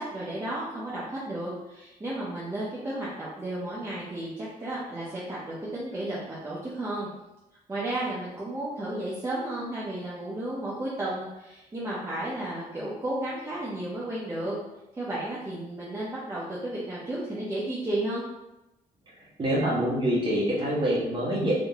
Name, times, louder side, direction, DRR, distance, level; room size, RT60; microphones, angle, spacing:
voice 1, 0.0-7.1 7.7-14.6 14.9-18.2, right 1 dB, 20° right, -8 dB, 0.8 m, -33 dB
voice 2, 19.2-21.5, equal, 35° right, -5 dB, 1.3 m, -26 dB
3.7 x 2.7 x 3.5 m, 0.94 s
cardioid pair, 145°, 15 cm